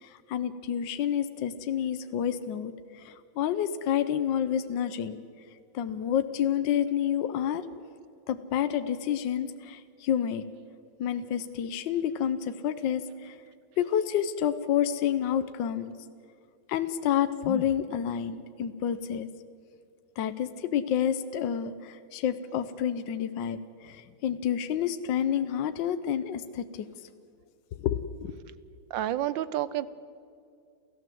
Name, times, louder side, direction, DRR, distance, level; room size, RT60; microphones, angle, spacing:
voice 1, 0.0-5.2 5.7-7.6 8.3-10.4 11.0-13.4 13.8-15.9 16.7-19.3 20.2-26.9 27.8-28.3, left 9 dB, 70° left, 11 dB, 1.4 m, -29 dB
voice 2, 28.9-29.9, right 13 dB, 75° right, 16 dB, 1.4 m, -29 dB
28.5 x 14.5 x 7.8 m, 2.3 s
omnidirectional pair, 2.1 m